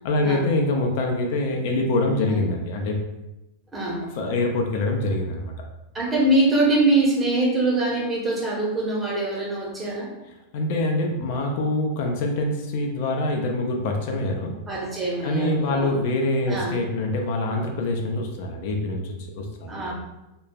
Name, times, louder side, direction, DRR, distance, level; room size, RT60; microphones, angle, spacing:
voice 1, 0.0-3.0 4.1-5.5 10.5-14.6 15.2-19.9, left 2 dB, 50° left, 2 dB, 0.4 m, -25 dB
voice 2, 3.7-4.1 5.9-10.1 14.7-15.9 16.5-16.8 19.7-19.9, right 2 dB, 15° right, -3 dB, 0.8 m, -23 dB
2.9 x 2.3 x 2.3 m, 0.96 s
figure-of-eight pair, 90°, 0 cm